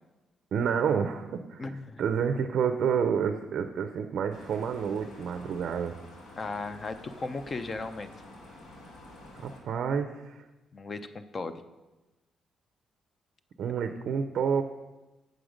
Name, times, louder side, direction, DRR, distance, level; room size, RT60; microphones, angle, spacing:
voice 1, 0.5-1.6 2.0-6.0 9.4-10.5 13.6-14.6, right 7 dB, 60° right, 8 dB, 0.4 m, -29 dB
voice 2, 1.6-2.0 6.4-8.1 10.7-11.6, left 3 dB, 30° left, 10 dB, 0.4 m, -36 dB
sound 1, 4.3-9.6, left 1 dB, 80° left, 1.5 m, -49 dB
7.7 x 6.3 x 5.0 m, 1.1 s
cardioid pair, 155°, 0 cm